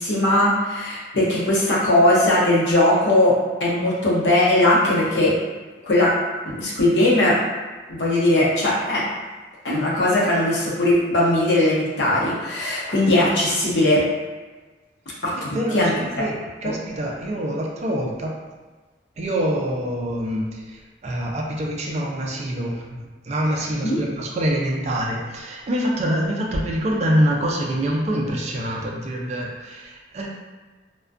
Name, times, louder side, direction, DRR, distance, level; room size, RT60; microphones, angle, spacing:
voice 1, 0.0-5.3 5.8-6.1 6.4-7.4 7.9-9.0 9.6-14.1 15.2-15.9 16.2-16.3 16.6-16.7 23.8-24.0, left 1 dB, 75° left, -5 dB, 0.7 m, -19 dB
voice 2, 15.3-18.3 19.2-30.3, equal, 40° right, -1 dB, 0.3 m, -25 dB
2.4 x 2.1 x 2.4 m, 1.3 s
head